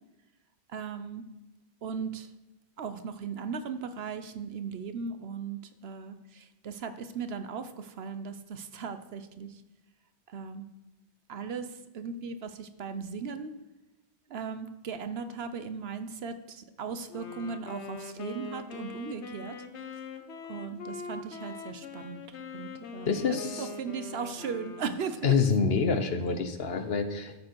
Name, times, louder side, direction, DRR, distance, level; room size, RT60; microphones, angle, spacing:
voice 1, 0.7-1.2 1.8-2.3 2.8-9.5 10.3-10.6 11.3-11.7 11.9-13.5 14.3-19.6 20.5-22.2 22.5-25.4, right 6 dB, 70° right, 10 dB, 1.0 m, -37 dB
Wind instrument woodwind instrument, 17.1-25.4, left 4 dB, 85° left, 1.1 m, -43 dB
voice 2, 23.1-23.7 25.2-27.4, left 5 dB, 65° left, 8 dB, 1.2 m, -27 dB
12.5 x 7.4 x 4.7 m, 0.99 s
omnidirectional pair, 1.1 m